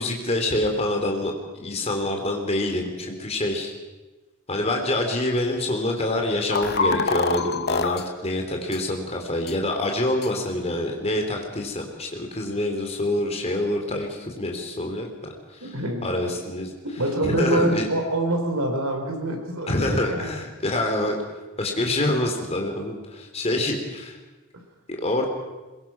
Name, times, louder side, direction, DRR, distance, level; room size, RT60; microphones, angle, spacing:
voice 1, 0.0-3.7 4.5-15.1 15.5-15.7 16.0-16.7 17.2-17.9 19.7-21.2 21.6-24.2 24.9-25.3, left 1 dB, 30° left, 2 dB, 3.5 m, -26 dB
sound 1, 6.5-8.0 8.7-8.8 9.5-9.6 10.2-10.3, left 4 dB, 50° left, 1.0 m, -24 dB
voice 2, 15.6-16.3 17.0-20.3, right 1 dB, 90° right, 3 dB, 4.5 m, -26 dB
22.0 x 22.0 x 6.0 m, 1.2 s
head